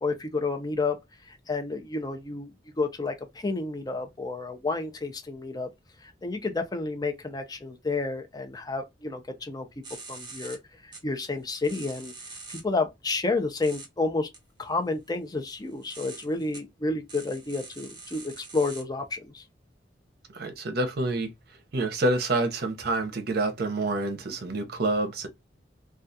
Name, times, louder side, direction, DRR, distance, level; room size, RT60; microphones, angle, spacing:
voice 1, 0.0-1.0 1.3-2.5 2.8-5.7 6.0-9.8 10.1-10.6 10.8-12.1 12.5-14.3 14.6-19.4, left 3 dB, 20° left, 0.5 m, -30 dB
sound 1, 9.8-10.6 10.9-11.0 11.5-12.6 13.6-13.9 14.3-14.4 15.5-16.6 17.1-18.8, right 3 dB, 25° right, 0.9 m, -44 dB
voice 2, 20.3-21.3 21.7-25.3, right 2 dB, 60° right, 0.7 m, -27 dB
2.3 x 2.3 x 2.6 m
head